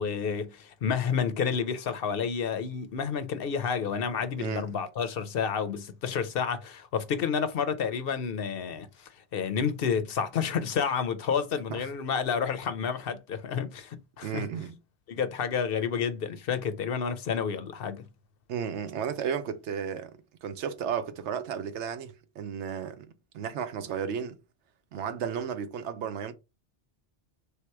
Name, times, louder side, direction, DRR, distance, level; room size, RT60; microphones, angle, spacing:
voice 1, 0.0-14.5 15.1-18.1, left 6 dB, 60° left, 0.7 m, -30 dB
voice 2, 14.2-14.7 18.5-23.1 23.3-24.4 24.9-26.3, right 7 dB, 85° right, 1.0 m, -33 dB
3.4 x 2.9 x 4.5 m
omnidirectional pair, 1.1 m